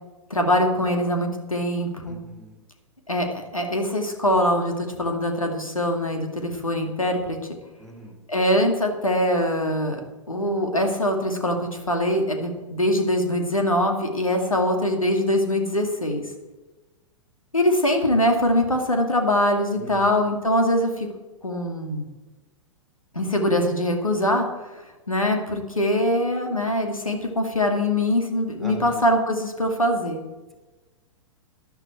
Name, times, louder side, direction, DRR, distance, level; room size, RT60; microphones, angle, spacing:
voice 1, 0.3-2.2 3.1-7.4 8.3-10.0 10.3-16.2 17.5-21.1 21.4-22.0 23.1-24.5 25.1-30.2, left 1 dB, 85° left, 4 dB, 2.4 m, -23 dB
voice 2, 2.1-2.6 7.8-8.2 19.8-20.2 28.6-29.0, right 1 dB, ahead, 2 dB, 2.7 m, -40 dB
13.5 x 11.0 x 4.5 m, 1.2 s
figure-of-eight pair, 105°, 17 cm